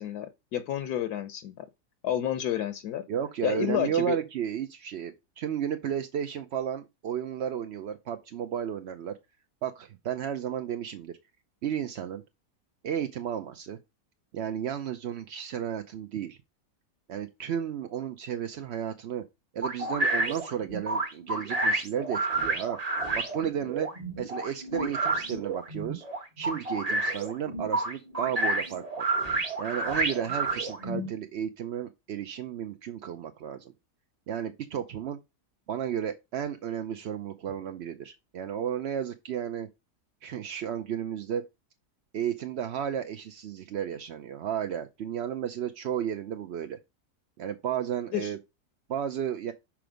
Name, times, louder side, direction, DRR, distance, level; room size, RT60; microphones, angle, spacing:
voice 1, 0.0-1.7 2.0-3.0 3.4-4.2 48.1-48.3, left 11 dB, 75° left, 1.2 m, -30 dB
voice 2, 3.1-9.1 9.6-11.2 11.6-12.2 12.8-13.8 14.3-16.4 17.1-19.2 19.5-22.8 23.1-26.0 26.4-29.1 29.6-33.7 34.3-35.2 35.7-39.7 40.2-41.4 42.1-46.8 47.4-48.4 48.9-49.5, right 9 dB, 60° right, 0.7 m, -33 dB
sound 1, 19.6-31.1, right 2 dB, 25° right, 1.1 m, -30 dB
6.1 x 4.5 x 5.0 m
omnidirectional pair, 1.7 m